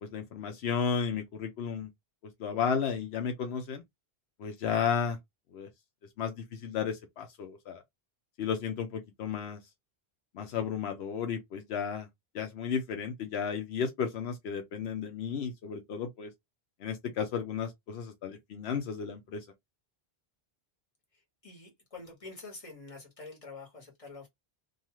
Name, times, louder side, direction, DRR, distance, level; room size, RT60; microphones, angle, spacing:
voice 1, 0.0-1.9 2.4-3.8 4.4-5.2 5.5-5.7 6.2-7.8 8.4-9.6 10.3-12.1 12.3-16.3 16.8-19.5, left 7 dB, 80° left, 0.9 m, -33 dB
voice 2, 21.1-24.3, left 3 dB, 35° left, 1.3 m, -47 dB
2.6 x 2.3 x 2.9 m
omnidirectional pair, 1.1 m